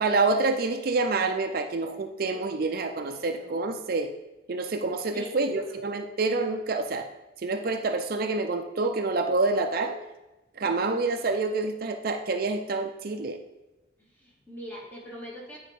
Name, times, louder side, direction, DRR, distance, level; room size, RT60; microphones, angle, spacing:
voice 1, 0.0-4.1 4.5-7.1 7.4-10.0 10.6-13.4, right 3 dB, 55° right, 6 dB, 0.5 m, -27 dB
voice 2, 2.3-3.7 5.1-5.8 10.6-11.2 14.0-15.6, left 1 dB, 10° left, -4 dB, 2.2 m, -43 dB
9.3 x 4.7 x 5.2 m, 1.0 s
head